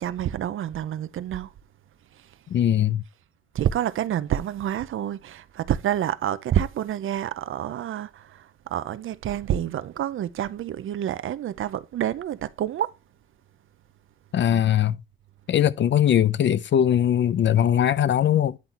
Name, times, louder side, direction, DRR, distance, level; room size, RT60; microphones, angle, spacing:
voice 1, 0.0-1.5 3.5-12.9, right 11 dB, 70° right, 0.7 m, -28 dB
voice 2, 2.5-3.0 14.3-15.0 15.5-18.6, left 10 dB, 60° left, 0.7 m, -20 dB
9.7 x 3.9 x 4.3 m
cardioid pair, 95°, 21 cm